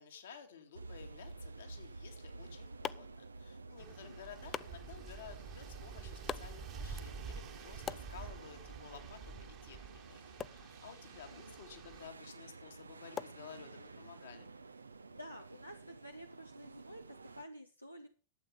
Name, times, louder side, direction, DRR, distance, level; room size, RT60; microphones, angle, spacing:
voice 1, 0.0-14.5, left 7 dB, 65° left, 6 dB, 2.2 m, -54 dB
sound 1, 0.7-17.4, right 3 dB, 75° right, 0.6 m, -52 dB
sound 2, 2.2-14.1, left 8 dB, 25° left, 0.5 m, -50 dB
sound 3, 3.8-12.1, right 5 dB, 35° right, 1.5 m, -49 dB
voice 2, 15.1-18.1, equal, 90° left, 5 dB, 0.9 m, -51 dB
12.0 x 8.3 x 5.6 m, 0.35 s
figure-of-eight pair, 90°, 0 cm